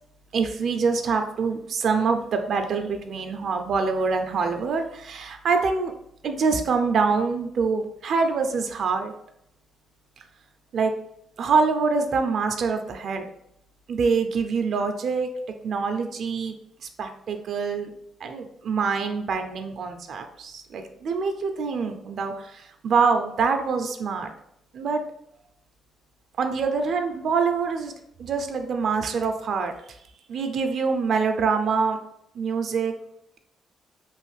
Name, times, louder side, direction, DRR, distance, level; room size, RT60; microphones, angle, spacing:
voice 1, 0.3-5.9 6.2-9.1 10.7-10.9 11.4-13.3 13.9-15.3 15.6-16.6 16.8-17.9 18.2-24.3 24.7-25.0 26.4-27.9 28.2-30.0 30.3-32.0 32.3-32.9, right 5 dB, 60° right, 6 dB, 0.4 m, -25 dB
3.1 x 2.5 x 3.1 m, 0.74 s
cardioid pair, 90°, 0 cm